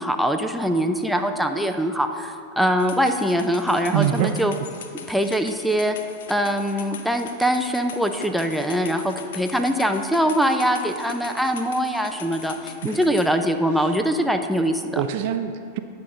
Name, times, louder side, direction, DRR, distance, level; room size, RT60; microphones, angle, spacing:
voice 1, 0.0-4.5 5.1-5.9 6.3-15.0, equal, ahead, 5 dB, 0.5 m, -23 dB
sound 1, 2.8-13.3, left 7 dB, 65° left, 0.7 m, -40 dB
voice 2, 3.9-4.4 12.8-13.0 13.8-13.9 15.0-15.8, right 10 dB, 55° right, 9 dB, 0.4 m, -25 dB
9.7 x 5.6 x 3.8 m, 2.3 s
hypercardioid pair, 95°, 0 cm